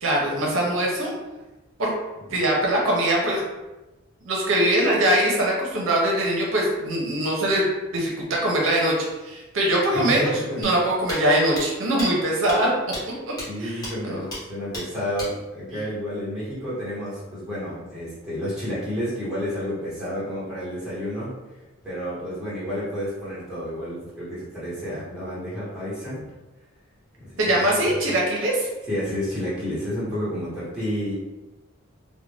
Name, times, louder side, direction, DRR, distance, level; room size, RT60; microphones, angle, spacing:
voice 1, 0.0-1.1 1.8-1.9 2.3-3.4 4.3-7.7 7.9-12.7 13.6-13.7 14.0-14.2 27.4-28.7, right 1 dB, 65° right, -3 dB, 0.6 m, -22 dB
voice 2, 9.9-10.6 13.5-21.3 21.8-26.3 27.2-27.6 27.9-28.0 28.9-31.1, equal, 5° right, -11 dB, 1.1 m, -30 dB
sound 1, 10.6-10.7 11.1-11.2 11.6-11.7 12.0-12.1 12.5-12.6 12.9-13.0 13.4-13.5 13.8-13.9 14.3-14.4 14.7-14.8 15.2-15.3, left 1 dB, 20° left, 0.8 m, -33 dB
2.4 x 2.1 x 3.2 m, 1.1 s
head